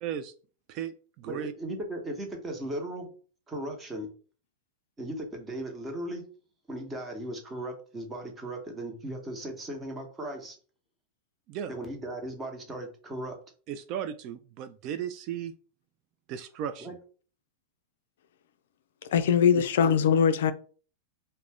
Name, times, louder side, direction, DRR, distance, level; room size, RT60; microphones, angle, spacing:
voice 1, 0.0-0.3 0.7-1.5 11.5-11.7 13.7-15.5 16.3-16.9, right 9 dB, 50° right, 0.3 m, -35 dB
voice 2, 1.3-3.1 3.5-4.1 5.0-6.2 6.7-10.6 11.7-13.4 16.8-16.9 19.5-19.6, right 1 dB, 20° right, 0.9 m, -37 dB
voice 3, 19.1-20.5, left 7 dB, 75° left, 0.3 m, -21 dB
2.4 x 2.1 x 3.4 m
hypercardioid pair, 110°, 0 cm